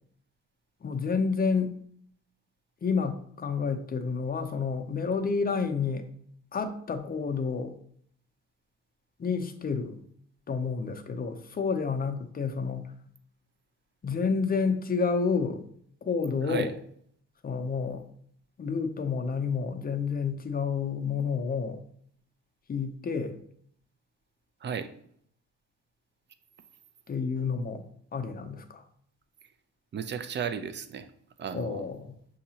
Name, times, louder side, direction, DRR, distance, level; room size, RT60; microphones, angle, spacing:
voice 1, 0.8-1.7 2.8-6.0 6.5-7.7 9.2-10.0 10.5-12.9 14.0-15.6 16.0-16.7 17.4-18.0 18.6-21.8 22.7-23.4 27.1-27.8 28.1-28.8 31.5-32.1, left 5 dB, 30° left, 7 dB, 0.6 m, -29 dB
voice 2, 16.4-16.7 24.6-24.9 29.9-31.1 31.4-31.9, right 7 dB, 35° right, 10 dB, 0.5 m, -34 dB
6.5 x 2.8 x 2.8 m, 0.65 s
cardioid pair, 90°, 30 cm